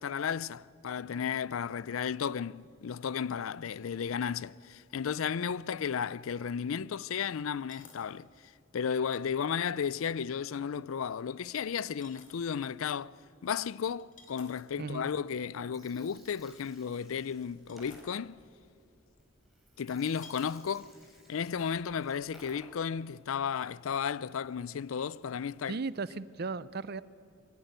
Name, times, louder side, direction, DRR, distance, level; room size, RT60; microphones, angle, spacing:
voice 1, 0.0-8.3 8.7-13.1 13.4-18.4 19.8-20.9 21.3-25.8, left 7 dB, 80° left, 0.4 m, -34 dB
sound 1, 4.3-4.4 4.7-4.8 7.6-8.1 8.5-8.6 10.4-10.5 12.0-12.4 14.0-14.8 17.0-17.1 17.4-18.0 19.2-19.3 20.2-20.6 21.0-21.2, left 5 dB, 40° left, 2.9 m, -54 dB
voice 2, 14.8-15.1 25.7-27.0, right 4 dB, 50° right, 0.5 m, -36 dB
Gurgling, 15.5-23.0, equal, ahead, 3.6 m, -59 dB
22.5 x 17.5 x 9.2 m
head